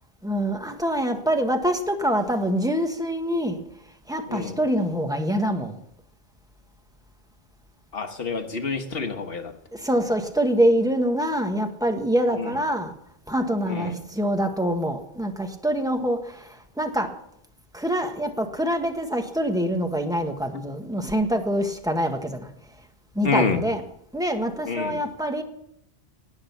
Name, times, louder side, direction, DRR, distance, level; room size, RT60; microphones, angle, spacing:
voice 1, 0.2-3.6 4.1-5.8 9.7-12.9 13.3-17.1 17.7-22.5 23.1-23.8 24.1-25.4, equal, 5° right, 5 dB, 1.4 m, -25 dB
voice 2, 4.3-4.6 7.9-9.5 12.3-12.6 13.6-14.0 23.2-23.6 24.6-25.0, left 4 dB, 65° left, 6 dB, 1.5 m, -28 dB
18.5 x 6.4 x 7.4 m, 0.73 s
omnidirectional pair, 1.1 m